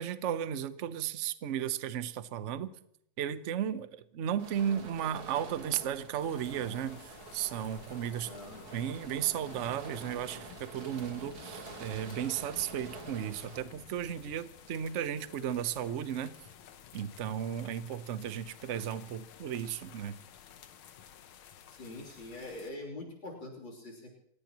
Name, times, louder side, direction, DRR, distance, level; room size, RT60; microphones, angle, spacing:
voice 1, 0.0-2.7 3.2-8.3 8.7-16.3 16.9-20.2, right 9 dB, 60° right, 12 dB, 0.8 m, -35 dB
sound 1, 4.4-13.6, right 3 dB, 90° right, 3.0 m, -48 dB
sound 2, 6.2-22.7, left 9 dB, 85° left, 1.8 m, -53 dB
voice 2, 8.2-8.7 21.7-24.1, left 2 dB, 65° left, 1 dB, 3.9 m, -44 dB
30.0 x 15.5 x 3.0 m, 0.73 s
omnidirectional pair, 2.3 m